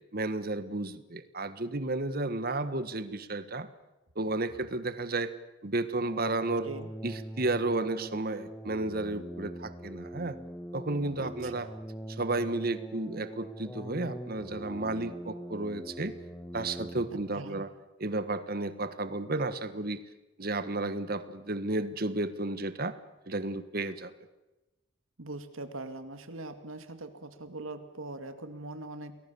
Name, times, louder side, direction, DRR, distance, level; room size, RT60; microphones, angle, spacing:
voice 1, 0.1-3.7 4.1-5.3 5.6-6.7 7.0-10.4 10.7-11.7 12.1-16.1 16.5-17.7 18.0-20.0 20.4-23.0 23.3-24.1, right 2 dB, 45° right, 13 dB, 1.4 m, -32 dB
sound 1, 5.9-17.2, right 1 dB, 10° left, 1.3 m, -43 dB
voice 2, 11.2-11.7 17.1-17.6 25.2-29.2, right 2 dB, 90° right, 9 dB, 2.4 m, -42 dB
29.0 x 21.5 x 7.0 m, 1.0 s
head